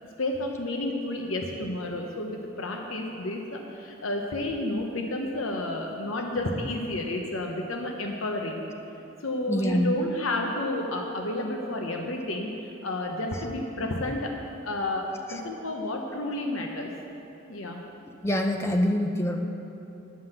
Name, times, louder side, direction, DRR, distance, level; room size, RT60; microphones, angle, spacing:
voice 1, 0.2-8.6 9.2-16.9 17.5-17.8, left 1 dB, 85° left, 2 dB, 0.9 m, -31 dB
voice 2, 9.5-10.0 18.2-19.4, left 1 dB, 15° left, 4 dB, 0.6 m, -25 dB
9.5 x 5.7 x 7.8 m, 2.9 s
head